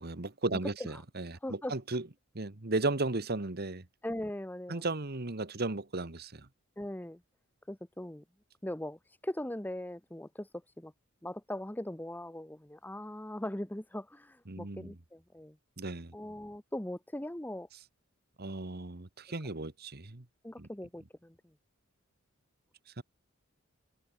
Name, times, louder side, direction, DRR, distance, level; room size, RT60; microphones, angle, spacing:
voice 1, 0.0-2.1 2.3-3.8 4.7-6.5 14.5-14.9 15.8-16.1 18.4-20.2 20.6-20.7 23.0-23.1, right 2 dB, 50° right, 1.5 m, -35 dB
voice 2, 0.5-1.0 1.4-1.7 4.0-4.8 6.8-7.2 7.7-8.2 8.6-10.9 11.2-15.5 16.1-17.7 20.4-21.3, left 1 dB, 10° left, 0.9 m, -40 dB
head